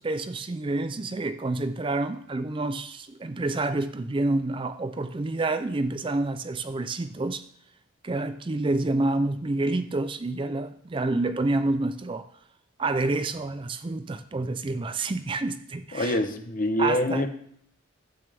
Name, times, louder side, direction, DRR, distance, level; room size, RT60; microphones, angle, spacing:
voice 1, 0.0-7.4 8.0-12.3 12.8-16.2 16.8-17.3, right 2 dB, 25° right, 11 dB, 0.4 m, -28 dB
voice 2, 15.9-17.3, left 1 dB, 45° left, 8 dB, 0.9 m, -25 dB
12.0 x 8.8 x 3.4 m, 0.67 s
head